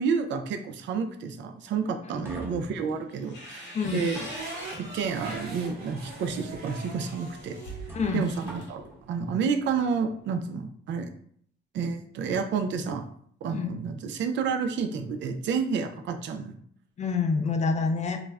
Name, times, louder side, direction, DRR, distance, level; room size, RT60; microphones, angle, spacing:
voice 1, 0.0-4.3 4.8-7.6 8.1-8.8 9.1-11.1 11.7-13.0 13.4-16.6, right 5 dB, 70° right, 7 dB, 0.4 m, -30 dB
sound 1, 1.7-3.4 3.9-5.0 6.0-6.2 6.7-6.8 7.3-7.4 7.9-9.0, right 1 dB, 10° right, 0.9 m, -45 dB
sound 2, 3.1-5.4 5.9-8.7, equal, 65° left, 0.9 m, -44 dB
voice 2, 3.7-4.1 7.9-8.2 13.5-13.7 17.0-18.2, left 4 dB, 35° left, 6 dB, 0.4 m, -27 dB
sound 3, 4.1-10.2, right 2 dB, 50° right, 0.9 m, -43 dB
2.3 x 2.0 x 3.4 m, 0.62 s
cardioid pair, 90°, 20 cm